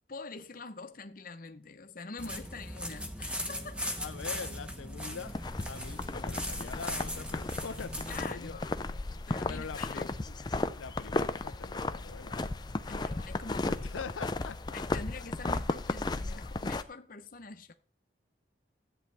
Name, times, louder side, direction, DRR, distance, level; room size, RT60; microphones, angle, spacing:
voice 1, 0.1-4.0 8.1-8.8 9.1-10.1 12.9-13.7 14.7-17.7, left 3 dB, 45° left, 0.8 m, -45 dB
sound 1, 2.2-8.3, equal, 5° right, 1.0 m, -39 dB
voice 2, 4.0-5.3 5.7-8.6 9.5-10.4 10.6-12.5 12.9-13.1 13.7-14.6 15.2-15.3, left 5 dB, 90° left, 0.5 m, -43 dB
sound 2, 5.2-16.8, left 2 dB, 20° left, 0.4 m, -35 dB
13.5 x 8.7 x 3.4 m
head